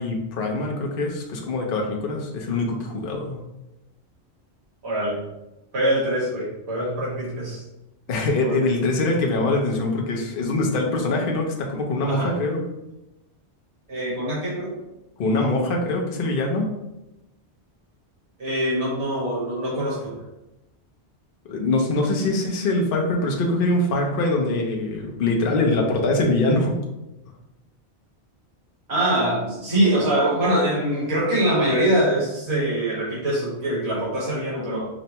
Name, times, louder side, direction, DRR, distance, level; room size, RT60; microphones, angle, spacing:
voice 1, 0.0-3.4 8.1-12.7 15.2-16.7 21.5-26.8, left 2 dB, 55° left, 1 dB, 0.8 m, -23 dB
voice 2, 4.8-5.2 5.7-7.6 8.4-8.6 12.1-12.3 13.9-14.7 18.4-20.1 28.9-34.9, right 1 dB, 65° right, -6 dB, 1.7 m, -23 dB
5.1 x 2.1 x 2.8 m, 0.93 s
omnidirectional pair, 1.2 m